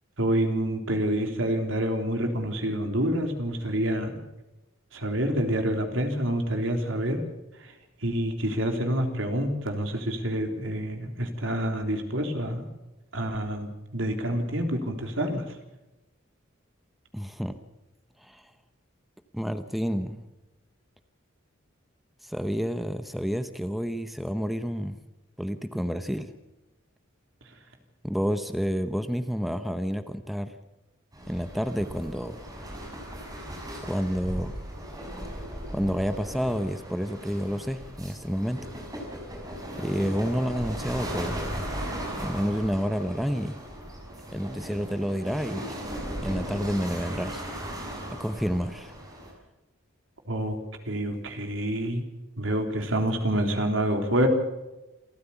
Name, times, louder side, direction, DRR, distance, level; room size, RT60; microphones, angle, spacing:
voice 1, 0.2-4.1 4.9-7.2 7.6-7.7 8.0-12.7 13.1-15.4 50.3-50.6 50.9-52.0 52.4-54.3, right 1 dB, 70° right, 4 dB, 3.6 m, -27 dB
voice 2, 17.1-17.6 18.2-18.5 19.3-20.3 22.2-25.0 25.4-26.3 28.0-30.5 31.3-32.4 33.8-34.6 35.7-38.6 39.8-41.4 42.2-43.6 44.3-45.7 46.2-47.4 48.1-48.9, equal, ahead, 9 dB, 0.9 m, -29 dB
sound 1, 31.1-49.3, equal, 20° right, 5.8 m, -37 dB
28.0 x 14.0 x 7.1 m, 1.0 s
head